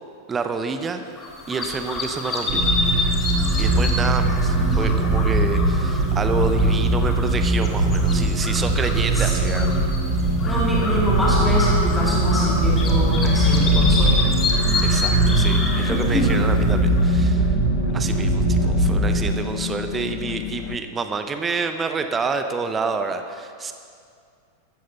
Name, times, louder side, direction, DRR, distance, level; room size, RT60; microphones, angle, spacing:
voice 1, 0.3-1.0 1.5-2.6 3.6-9.7 14.8-17.5 17.9-23.7, right 4 dB, 20° right, 7 dB, 0.9 m, -28 dB
sound 1, 1.2-17.2, left 3 dB, 25° left, 1.9 m, -29 dB
sound 2, 2.5-19.2, right 2 dB, 45° right, 2.8 m, -20 dB
voice 2, 4.6-5.2 9.2-9.7 10.4-14.4 15.9-16.3, equal, ahead, -6 dB, 2.5 m, -26 dB
sound 3, 12.0-20.8, left 8 dB, 45° left, 0.8 m, -30 dB
14.5 x 14.0 x 4.3 m, 2.3 s
figure-of-eight pair, 90°, 0 cm